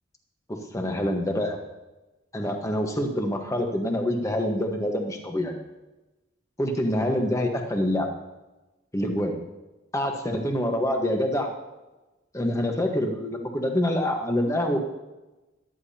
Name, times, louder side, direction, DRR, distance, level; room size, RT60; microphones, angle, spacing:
voice 1, 0.5-1.6 2.3-5.6 6.6-8.1 8.9-9.4 9.9-11.5 12.3-14.8, left 1 dB, 15° left, 3 dB, 1.3 m, -26 dB
13.5 x 12.0 x 2.9 m, 1.1 s
head